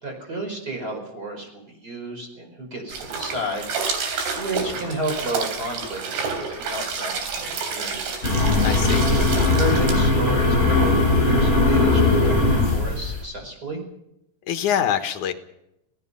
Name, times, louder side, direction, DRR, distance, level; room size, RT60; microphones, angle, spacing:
voice 1, 0.0-4.1 4.4-8.0 9.3-13.8, right 1 dB, 20° right, 2 dB, 5.2 m, -32 dB
sound 1, 2.9-10.0, right 5 dB, 85° right, 5.5 m, -29 dB
sound 2, 8.2-13.2, left 2 dB, 15° left, 7.8 m, -19 dB
voice 2, 8.6-9.1 14.5-15.3, left 9 dB, 60° left, 7 dB, 2.4 m, -24 dB
25.5 x 18.5 x 5.6 m, 0.84 s
omnidirectional pair, 4.7 m